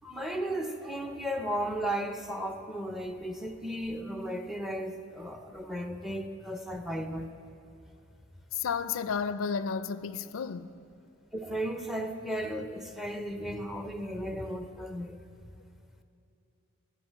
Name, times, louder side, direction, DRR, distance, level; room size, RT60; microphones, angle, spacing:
voice 1, 0.0-7.3 11.3-15.2, right 1 dB, ahead, 0.6 m, -35 dB
voice 2, 8.5-10.7, left 6 dB, 90° left, 0.4 m, -32 dB
12.0 x 7.2 x 7.4 m
head